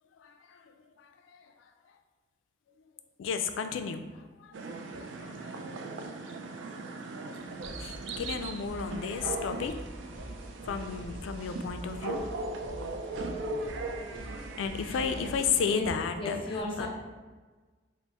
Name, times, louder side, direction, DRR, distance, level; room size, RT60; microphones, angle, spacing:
voice 1, 0.2-0.7 1.0-1.5 3.2-4.5 5.0-5.6 7.8-9.8 10.7-12.2 14.6-16.9, left 6 dB, 90° left, 8 dB, 0.3 m, -33 dB
sound 1, 4.5-15.8, right 3 dB, 80° right, 0.3 m, -39 dB
sound 2, 7.6-15.6, equal, 50° right, 0.7 m, -44 dB
voice 2, 16.2-16.9, left 2 dB, 25° left, -2 dB, 0.5 m, -34 dB
3.3 x 2.0 x 4.0 m, 1.3 s
head